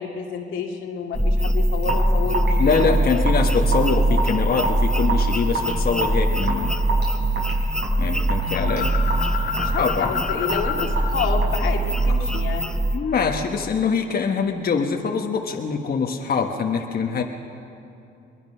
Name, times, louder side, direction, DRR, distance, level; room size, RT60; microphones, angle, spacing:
voice 1, 0.0-3.2 3.9-4.4 9.5-12.7, left 6 dB, 90° left, 1 dB, 2.4 m, -30 dB
sound 1, 1.1-13.0, right 1 dB, 5° left, 0.9 m, -22 dB
Raindrop / Drip, 1.8-12.3, right 3 dB, 60° right, 6.9 m, -30 dB
voice 2, 2.6-6.7 8.0-8.9 9.8-10.3 12.9-17.2, left 5 dB, 50° left, 2 dB, 1.4 m, -24 dB
sound 2, 8.5-11.1 11.4-13.7, left 7 dB, 70° left, 1.7 m, -32 dB
22.5 x 21.0 x 5.7 m, 2.7 s
cardioid pair, 90°, 20 cm